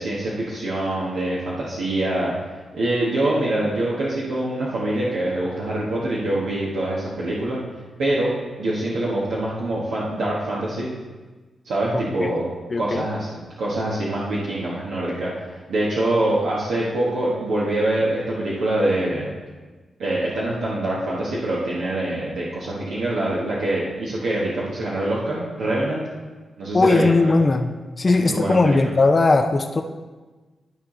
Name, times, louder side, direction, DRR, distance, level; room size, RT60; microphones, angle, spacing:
voice 1, 0.0-2.3 2.7-7.6 8.0-8.3 8.6-10.9 11.6-12.4 12.8-19.3 20.0-26.0 26.6-27.3 28.1-28.9, right 1 dB, 85° right, -7 dB, 1.4 m, -24 dB
voice 2, 12.7-13.0 26.7-29.8, left 3 dB, 40° left, 5 dB, 0.6 m, -18 dB
12.5 x 4.4 x 3.8 m, 1.3 s
cardioid pair, 55°, 0 cm